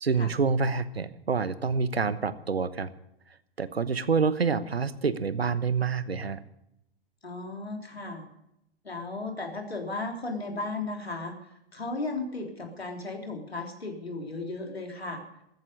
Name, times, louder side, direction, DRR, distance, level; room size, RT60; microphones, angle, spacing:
voice 1, 0.0-2.9 3.6-6.4, right 5 dB, 80° right, 15 dB, 1.1 m, -27 dB
voice 2, 7.2-8.3 8.8-15.2, left 2 dB, 80° left, 2 dB, 3.6 m, -35 dB
15.0 x 14.0 x 5.3 m, 0.82 s
figure-of-eight pair, 105°, 30 cm